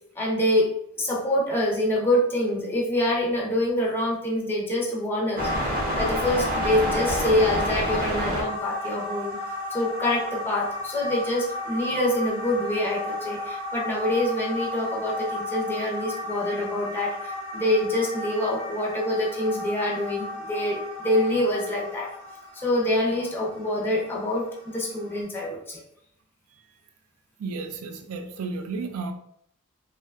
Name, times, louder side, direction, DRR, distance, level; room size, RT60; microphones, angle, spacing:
voice 1, 0.2-0.7 1.0-9.4 9.7-22.1 22.5-25.8, left 1 dB, 10° left, 0.4 m, -26 dB
sound 1, 5.4-25.2, left 1 dB, 45° right, 0.7 m, -31 dB
voice 2, 27.4-29.1, right 4 dB, 80° right, 0.4 m, -32 dB
2.7 x 2.1 x 2.3 m
head